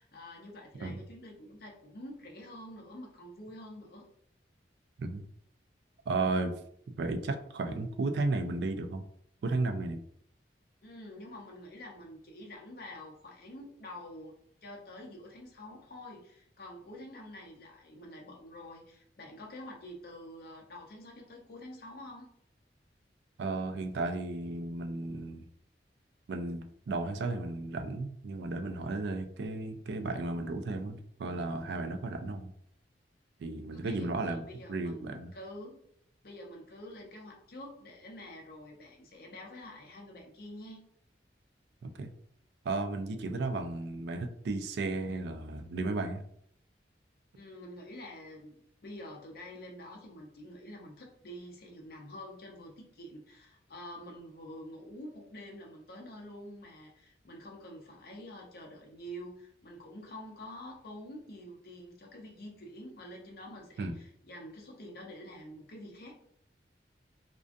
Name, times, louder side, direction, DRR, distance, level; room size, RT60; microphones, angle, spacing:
voice 1, 0.0-4.1 10.8-14.3 14.6-22.3 33.7-35.8 36.2-40.9 47.3-66.2, left 1 dB, 55° left, -1 dB, 0.6 m, -47 dB
voice 2, 6.1-6.5 7.0-9.0 9.4-10.0 23.4-25.5 26.3-32.5 33.4-34.4 34.7-35.3 41.8-42.1 42.6-46.2 63.8-63.9, right 3 dB, 65° right, 7 dB, 0.3 m, -34 dB
2.4 x 2.2 x 2.5 m, 0.67 s
head